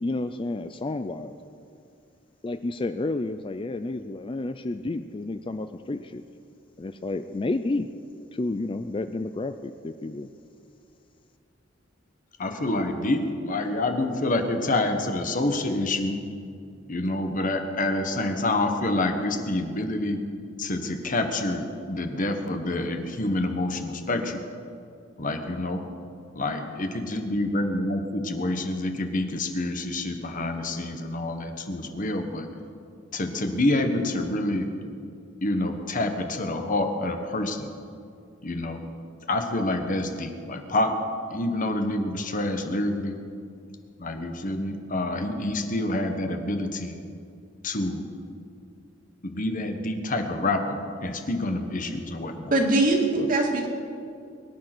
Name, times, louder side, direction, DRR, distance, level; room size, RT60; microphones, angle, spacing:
voice 1, 0.0-1.4 2.4-6.2 6.8-7.9 8.3-10.3 53.2-53.3, left 2 dB, 25° left, 9 dB, 0.4 m, -31 dB
voice 2, 12.4-16.2 16.9-20.2 20.6-24.4 25.2-25.8 26.3-32.5 33.1-34.7 35.4-37.7 38.4-38.8 39.3-41.0 41.3-43.2 44.0-47.0 47.6-48.0 49.2-52.5, left 2 dB, 45° left, 6 dB, 1.3 m, -27 dB
voice 3, 52.5-53.7, right 2 dB, 45° right, 1 dB, 2.4 m, -22 dB
22.5 x 10.5 x 6.1 m, 2.5 s
head